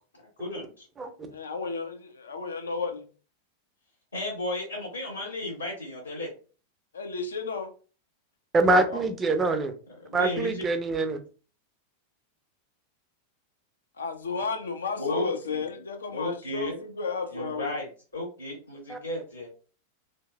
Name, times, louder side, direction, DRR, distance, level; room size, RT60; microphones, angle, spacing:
voice 1, 0.4-0.8 4.1-6.3 8.9-9.0 10.0-10.6 14.9-15.7 16.1-16.8 17.3-17.9 18.1-19.5, left 1 dB, 85° left, 1.3 m, -34 dB
voice 2, 1.3-3.1 6.9-7.7 14.0-17.8, left 4 dB, 70° left, 0.5 m, -33 dB
voice 3, 8.5-9.7 10.1-11.2 18.9-19.0, right 2 dB, 20° right, 0.5 m, -24 dB
3.1 x 2.6 x 2.3 m
figure-of-eight pair, 90°, 0 cm